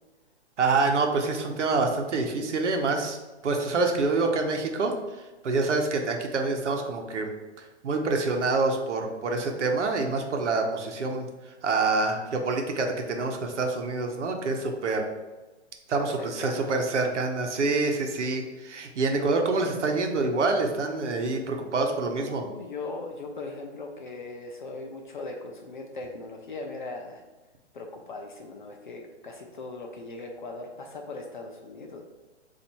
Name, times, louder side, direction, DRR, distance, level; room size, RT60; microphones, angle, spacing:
voice 1, 0.6-3.2 3.4-7.3 7.8-15.0 15.9-22.4, right 3 dB, 80° right, 3 dB, 1.0 m, -26 dB
voice 2, 16.2-16.7 22.1-27.2 27.7-32.0, left 3 dB, 45° left, 1 dB, 0.5 m, -39 dB
4.1 x 2.7 x 4.5 m, 1.2 s
hypercardioid pair, 175°, 35 cm